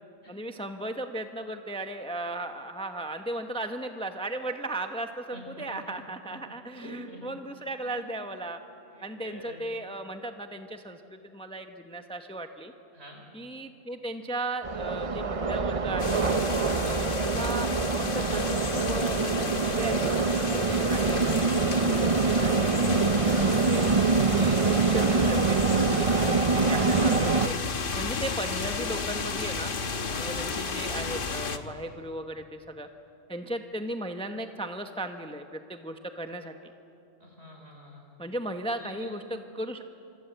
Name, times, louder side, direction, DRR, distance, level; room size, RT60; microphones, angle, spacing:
voice 1, 0.3-8.6 9.0-12.7 13.3-16.3 17.0-23.9 24.3-27.5 27.9-29.7 30.2-32.9 33.3-36.7 38.2-39.8, right 1 dB, 5° left, 6 dB, 0.9 m, -36 dB
voice 2, 5.3-5.7 6.7-7.3 7.8-8.0 8.9-9.7 12.9-13.2 16.7-17.1 22.9-23.3 24.3-24.6 30.1-30.3 37.2-38.0 38.8-39.1, right 1 dB, 60° right, 1 dB, 5.4 m, -46 dB
sound 1, 14.6-27.5, right 4 dB, 35° right, 0.8 m, -25 dB
sound 2, 16.0-31.6, left 5 dB, 50° left, 1.2 m, -33 dB
26.0 x 25.5 x 8.0 m, 2.8 s
omnidirectional pair, 1.2 m